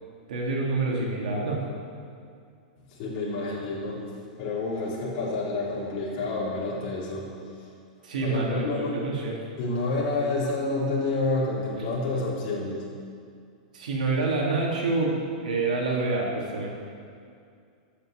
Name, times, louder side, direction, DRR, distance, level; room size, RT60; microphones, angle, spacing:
voice 1, 0.3-1.6 8.0-9.4 13.7-15.1 15.4-16.7, right 3 dB, 90° right, -2 dB, 3.5 m, -27 dB
voice 2, 2.9-4.0 4.4-7.3 8.2-9.0 9.6-12.9, left 2 dB, 40° left, -6 dB, 3.9 m, -29 dB
12.5 x 6.9 x 8.3 m, 2.3 s
supercardioid pair, 170°, 4 cm